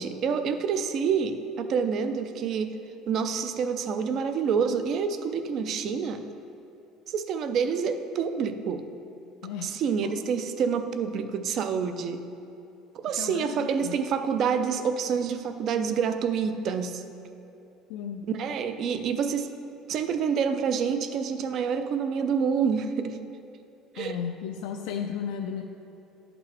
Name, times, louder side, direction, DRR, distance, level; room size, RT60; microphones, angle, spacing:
voice 1, 0.0-2.8 3.1-6.3 7.1-8.9 9.6-12.2 12.9-17.0 18.3-19.6 19.9-23.2 23.9-24.2, right 6 dB, 35° right, 9 dB, 0.4 m, -27 dB
voice 2, 9.4-10.1 13.2-14.0 17.9-18.3 24.0-25.6, left 8 dB, 85° left, 3 dB, 0.4 m, -34 dB
11.0 x 5.9 x 3.3 m, 2.7 s
cardioid pair, 180°, 0 cm